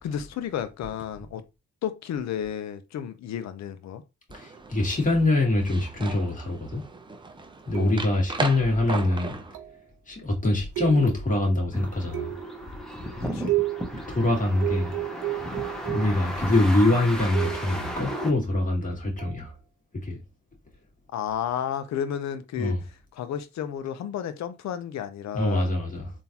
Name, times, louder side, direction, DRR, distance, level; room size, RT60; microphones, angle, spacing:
voice 1, 0.0-1.4 1.8-4.0 7.7-7.9 13.2-13.6 21.1-22.7 23.1-25.7, left 9 dB, 65° left, 0.6 m, -32 dB
voice 2, 4.3-6.8 7.7-9.4 10.1-12.3 14.1-14.9 15.9-19.5 20.0-20.2 22.6-22.8 25.3-26.1, left 2 dB, 25° left, 1.7 m, -24 dB
sound 1, 4.3-9.6, right 3 dB, 15° right, 0.5 m, -37 dB
sound 2, 7.7-8.3 9.5-9.9 10.8-11.4 12.1-12.6 13.5-14.0 14.6-16.3 17.3-17.8 19.2-19.4, right 17 dB, 90° right, 0.7 m, -31 dB
sound 3, 11.7-18.3, equal, ahead, 0.9 m, -34 dB
3.6 x 2.6 x 2.8 m
cardioid pair, 90°, 30 cm